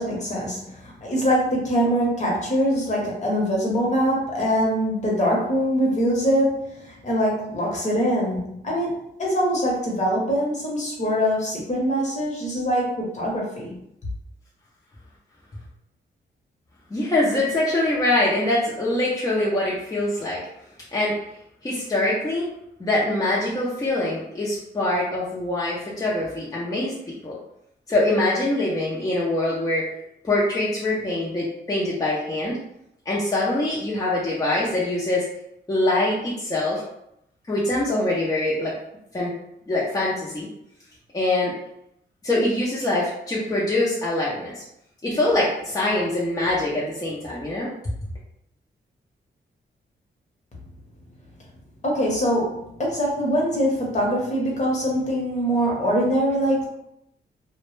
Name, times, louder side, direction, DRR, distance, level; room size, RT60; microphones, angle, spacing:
voice 1, 0.0-13.8 51.8-56.6, equal, 40° left, -3 dB, 0.9 m, -23 dB
voice 2, 16.9-20.4 20.9-21.2 21.6-22.5 22.8-27.4 27.9-29.9 30.2-32.6 33.1-35.2 35.7-36.8 37.5-38.7 39.1-39.3 39.7-40.5 41.1-41.5 42.2-44.6 45.0-47.7, left 1 dB, 20° left, -6 dB, 0.6 m, -24 dB
2.1 x 2.0 x 3.1 m, 0.80 s
cardioid pair, 80°, 18 cm